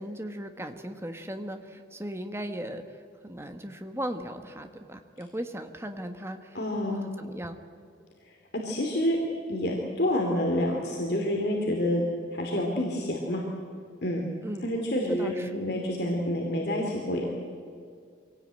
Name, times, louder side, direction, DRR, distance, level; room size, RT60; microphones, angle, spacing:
voice 1, 0.0-2.8 3.2-6.6 6.9-7.6 14.4-14.7 15.1-15.5, right 1 dB, 15° right, 7 dB, 1.2 m, -37 dB
voice 2, 6.5-7.0 8.6-9.2 9.5-12.0 12.3-13.4 14.0-14.2 14.6-17.3, left 1 dB, 55° left, -1 dB, 2.7 m, -28 dB
24.0 x 18.0 x 9.0 m, 2.3 s
head